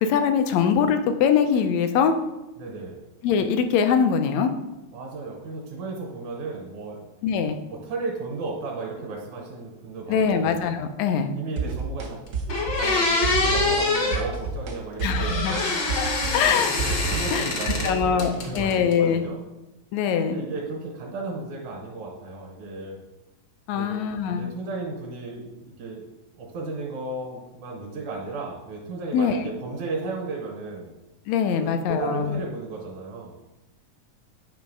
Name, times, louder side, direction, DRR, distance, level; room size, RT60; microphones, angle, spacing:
voice 1, 0.0-2.1 3.2-4.5 7.2-7.6 10.1-11.3 15.0-15.6 16.0-16.7 17.3-19.2 19.9-20.4 23.7-24.5 29.1-29.4 31.3-32.4, left 7 dB, 80° left, 7 dB, 1.7 m, -23 dB
voice 2, 2.6-3.0 4.9-7.1 7.7-10.5 11.3-12.2 12.7-15.6 17.1-19.4 20.2-23.0 23.7-24.0 24.3-26.0 26.4-30.9 31.5-33.4, right 3 dB, 85° right, -1 dB, 2.5 m, -34 dB
sound 1, 11.6-12.1 12.3-13.0 13.2-13.9 14.1-14.7 15.0-18.7, right 5 dB, 70° right, 1.0 m, -29 dB
sound 2, 12.0-12.1 12.5-14.2 15.1-17.9 18.2-18.9, left 3 dB, 60° left, 1.2 m, -25 dB
9.1 x 3.1 x 5.3 m, 0.97 s
omnidirectional pair, 3.3 m